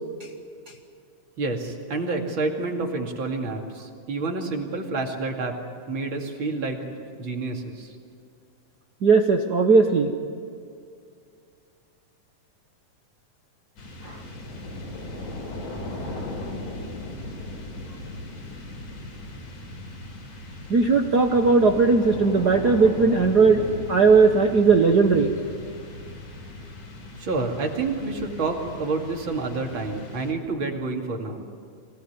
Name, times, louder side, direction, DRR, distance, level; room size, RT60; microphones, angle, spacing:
voice 1, 1.4-5.6 5.9-8.0 27.2-31.5, right 3 dB, 40° right, 2 dB, 3.0 m, -29 dB
voice 2, 9.0-10.1 14.0-14.2 20.7-23.6 23.9-25.3, right 4 dB, 70° right, 4 dB, 0.9 m, -18 dB
sound 1, 13.8-30.7, left 1 dB, 70° left, 5.1 m, -38 dB
24.5 x 18.5 x 9.6 m, 2.3 s
omnidirectional pair, 3.6 m